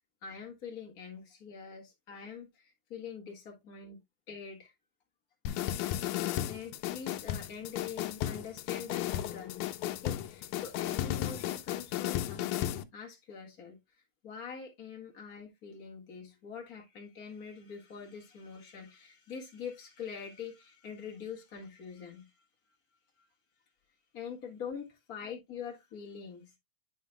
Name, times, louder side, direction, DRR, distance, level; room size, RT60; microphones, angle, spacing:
voice 1, 0.2-4.7 6.5-22.4 23.2-23.3 24.1-26.5, left 6 dB, 35° left, 1.7 m, -45 dB
sound 1, 5.5-12.8, left 12 dB, 85° left, 2.1 m, -34 dB
10.0 x 5.6 x 2.2 m
omnidirectional pair, 3.3 m